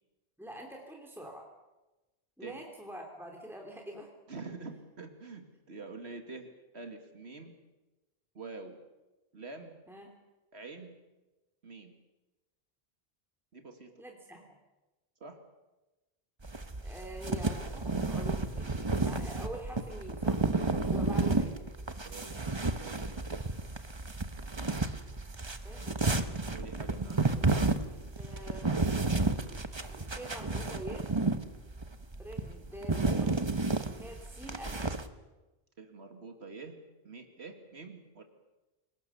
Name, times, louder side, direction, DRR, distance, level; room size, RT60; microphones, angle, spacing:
voice 1, 0.4-1.4 2.4-4.1 9.9-10.1 14.0-14.4 16.8-20.5 20.9-21.5 25.6-26.1 28.2-28.8 29.9-31.1 32.2-33.5 34.0-34.8, right 1 dB, ahead, 1 dB, 2.8 m, -45 dB
voice 2, 4.3-6.5 6.7-7.6 8.3-8.8 9.3-9.8 10.5-11.0 11.6-11.9 13.5-13.9 15.2-15.4 20.7-20.9 22.0-22.3 22.7-23.0 25.9-26.0 26.5-27.2 35.8-36.8 37.0-38.2, right 3 dB, 85° right, 5 dB, 2.4 m, -46 dB
sound 1, 16.4-35.1, right 3 dB, 25° right, 1.1 m, -32 dB
27.0 x 19.0 x 7.0 m, 1.1 s
omnidirectional pair, 1.1 m